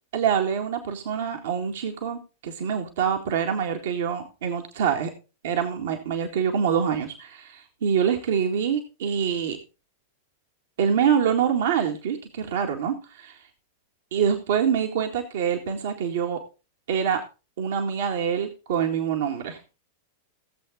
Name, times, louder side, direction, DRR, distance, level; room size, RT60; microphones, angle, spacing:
voice 1, 0.1-5.1 5.4-9.6 10.8-13.4 14.1-16.4 16.9-17.2 17.6-19.6, right 7 dB, 60° right, 3 dB, 1.9 m, -25 dB
17.0 x 8.0 x 3.8 m, 0.31 s
figure-of-eight pair, 95°, 0 cm